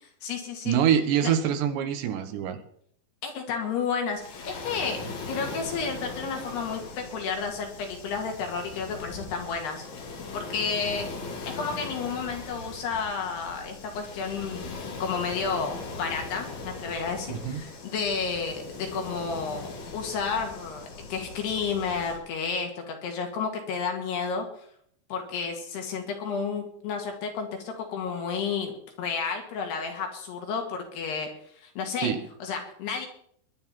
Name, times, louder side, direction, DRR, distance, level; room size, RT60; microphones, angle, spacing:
voice 1, 0.0-0.8 1.2-1.3 3.2-5.0 5.3-9.9 10.3-11.1 11.4-24.5 25.1-28.7 29.0-32.1 32.4-33.1, left 5 dB, 70° left, 3 dB, 4.0 m, -31 dB
voice 2, 0.7-2.6 17.3-17.6 32.0-32.2, right 9 dB, 80° right, 8 dB, 3.5 m, -25 dB
Waves surf, 4.1-22.2, left 4 dB, 50° left, 3.4 m, -40 dB
21.5 x 11.0 x 4.4 m, 0.65 s
omnidirectional pair, 5.1 m